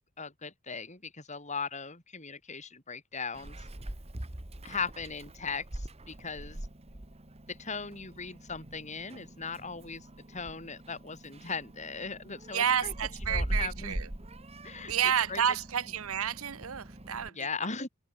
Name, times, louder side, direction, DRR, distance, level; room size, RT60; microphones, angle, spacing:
voice 1, 0.2-3.7 4.6-6.7 7.5-12.9 13.3-14.0 14.6-15.4 17.2-17.9, left 5 dB, 35° left, 6.5 m, -38 dB
Meow, 3.3-17.3, right 1 dB, 30° right, 1.5 m, -41 dB
voice 2, 12.5-14.1 14.9-17.3, right 8 dB, 75° right, 0.9 m, -30 dB
open air
head